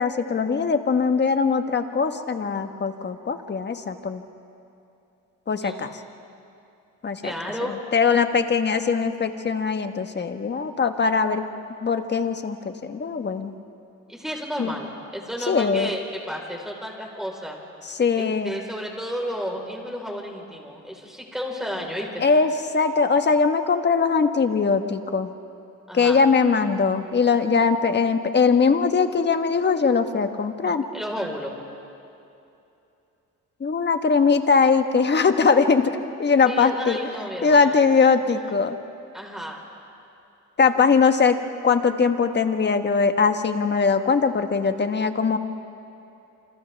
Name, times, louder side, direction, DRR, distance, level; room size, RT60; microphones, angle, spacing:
voice 1, 0.0-4.2 5.5-5.9 7.0-7.3 7.6-11.4 11.8-13.5 14.6-14.8 15.5-15.9 17.8-18.5 22.2-25.3 25.9-30.9 33.6-37.0 37.4-38.8 40.6-45.4, left 5 dB, 35° left, 7 dB, 1.4 m, -21 dB
voice 2, 7.2-7.7 14.1-17.6 18.2-22.2 25.9-26.2 30.9-31.5 36.4-37.7 39.1-39.6, equal, ahead, 0 dB, 4.4 m, -32 dB
28.5 x 28.5 x 3.5 m, 2.8 s
cardioid pair, 90°, 30 cm